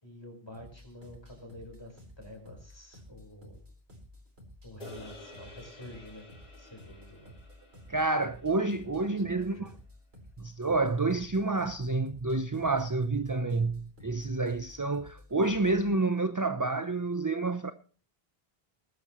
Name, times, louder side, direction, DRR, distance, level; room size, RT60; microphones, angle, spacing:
voice 1, 0.0-3.6 4.6-6.3 6.6-7.3 8.8-9.7, left 1 dB, 25° left, 4.6 m, -48 dB
sound 1, 0.5-15.9, left 1 dB, 80° right, 4.4 m, -53 dB
sound 2, 4.8-9.3, left 1 dB, 40° left, 2.9 m, -52 dB
voice 2, 7.9-9.7 10.4-17.7, right 3 dB, 20° right, 0.6 m, -29 dB
20.0 x 12.0 x 3.1 m
omnidirectional pair, 1.0 m